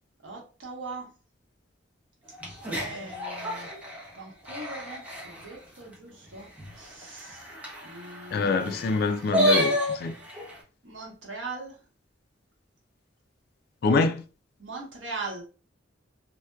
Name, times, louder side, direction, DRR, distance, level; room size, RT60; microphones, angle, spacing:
voice 1, 0.2-1.2 2.7-3.7 4.1-7.5 7.8-9.0 10.8-11.9 14.6-15.4, right 3 dB, 80° right, 1.0 m, -40 dB
sound 1, 2.3-5.5 5.9-6.0 6.3-6.4 6.6-10.6, equal, 10° right, 0.7 m, -30 dB
voice 2, 8.3-10.1 13.8-14.2, left 4 dB, 55° left, 0.3 m, -25 dB
2.7 x 2.1 x 2.2 m
head